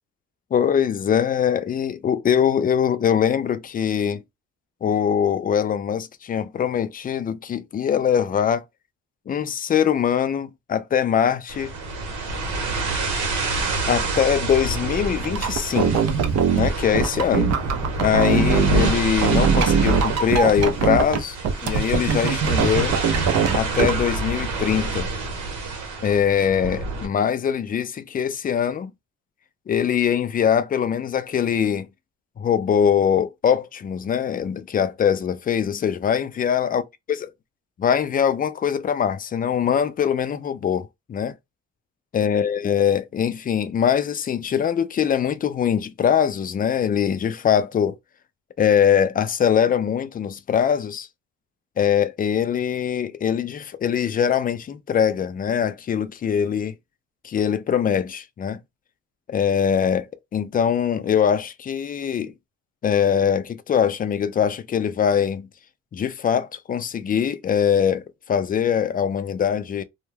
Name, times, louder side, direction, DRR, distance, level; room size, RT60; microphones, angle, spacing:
voice 1, 0.5-4.2 4.8-8.6 9.3-11.7 13.9-16.1 16.5-17.5 18.0-21.4 21.6-23.0 23.5-25.1 26.0-28.9 29.7-31.9 32.4-36.8 37.8-41.3 42.1-48.0 48.6-51.1 51.8-56.7 57.2-58.6 59.3-60.1 60.3-62.3 62.8-65.5 65.9-69.8, left 8 dB, 30° left, 0.4 m, -22 dB
sound 1, 11.5-27.1, right 3 dB, 85° right, 1.0 m, -28 dB
sound 2, 15.2-18.9 19.2-21.2 21.4-23.9, right 6 dB, 60° right, 0.5 m, -21 dB
2.2 x 2.1 x 3.2 m
cardioid pair, 90°, 30 cm